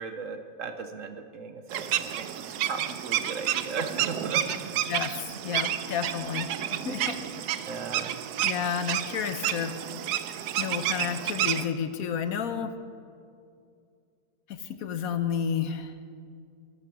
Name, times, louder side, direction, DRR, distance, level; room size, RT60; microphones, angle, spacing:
voice 1, 0.0-4.4 7.7-8.2, right 5 dB, 60° right, 8 dB, 1.1 m, -37 dB
sound 1, 1.7-11.6, right 11 dB, 80° right, 1.2 m, -30 dB
voice 2, 4.9-7.6 8.4-9.7 10.6-12.7 14.5-15.9, left 7 dB, 65° left, 10 dB, 1.2 m, -31 dB
13.0 x 12.0 x 6.1 m, 2.3 s
omnidirectional pair, 1.7 m